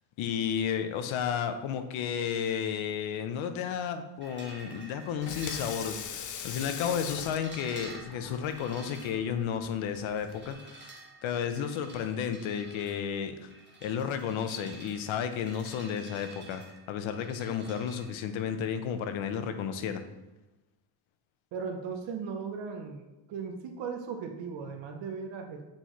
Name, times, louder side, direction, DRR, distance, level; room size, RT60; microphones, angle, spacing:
voice 1, 0.2-10.9 11.2-13.5 13.8-16.6 16.9-20.0, left 8 dB, 75° left, 8 dB, 0.8 m, -32 dB
sound 1, 4.2-18.0, right 2 dB, 25° right, 0.9 m, -50 dB
Water tap faucet / Sink (filling or washing), 5.0-10.5, left 7 dB, 40° left, 0.5 m, -42 dB
voice 2, 21.5-25.6, right 5 dB, 65° right, 4 dB, 0.8 m, -37 dB
7.8 x 4.3 x 3.1 m, 1.0 s
cardioid pair, 145°, 48 cm